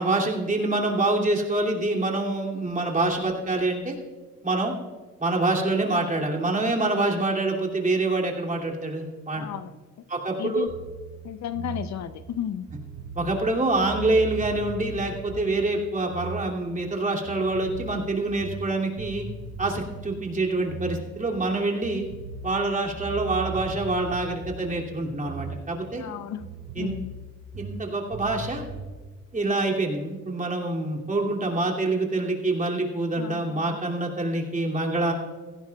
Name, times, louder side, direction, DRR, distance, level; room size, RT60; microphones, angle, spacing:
voice 1, 0.0-4.0 4.4-4.7 5.2-9.5 10.1-10.7 13.2-19.2 19.6-22.0 22.4-26.0 26.8-26.9 27.5-28.6 29.3-35.1, right 2 dB, 25° right, -1 dB, 2.7 m, -26 dB
voice 2, 9.4-9.7 10.4-10.7 11.2-12.7 26.0-27.1 33.2-33.8, left 10 dB, 65° left, 12 dB, 0.7 m, -34 dB
sound 1, 10.7-17.0 17.3-21.6 21.8-26.1 26.4-29.0, right 4 dB, 60° right, 3.7 m, -38 dB
16.0 x 16.0 x 2.3 m, 1.4 s
cardioid pair, 90°, 30 cm